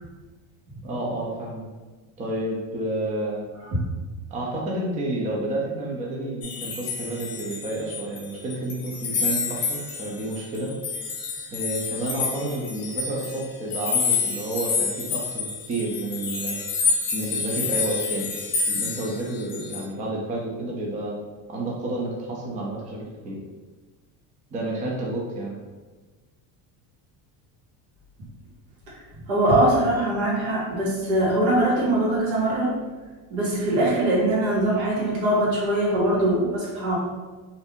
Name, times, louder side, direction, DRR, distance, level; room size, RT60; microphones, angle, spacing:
voice 1, 0.8-1.7 2.2-3.4 4.3-10.7 11.5-16.6 17.1-18.3 18.7-21.2 21.5-23.4 24.5-25.6, right 1 dB, 20° right, -3 dB, 0.4 m, -30 dB
sound 1, 6.4-8.2 8.5-19.8, left 5 dB, 60° left, 0.8 m, -28 dB
voice 2, 29.3-32.7 33.3-37.0, right 1 dB, 90° right, -5 dB, 1.4 m, -22 dB
2.7 x 2.5 x 3.5 m, 1.3 s
cardioid pair, 160°, 41 cm